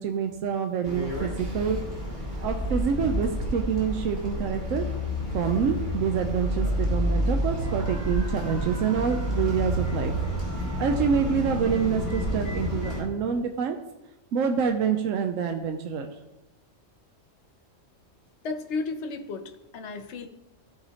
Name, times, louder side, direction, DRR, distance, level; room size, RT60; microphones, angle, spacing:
voice 1, 0.0-1.8 2.4-4.8 5.3-10.1 10.8-13.8 14.3-16.1, right 7 dB, 85° right, 5 dB, 1.0 m, -27 dB
sound 1, 0.8-13.0, equal, 35° right, 2.9 m, -29 dB
voice 2, 18.4-20.3, left 4 dB, 65° left, 7 dB, 1.0 m, -33 dB
13.5 x 4.8 x 2.9 m, 0.96 s
omnidirectional pair, 1.3 m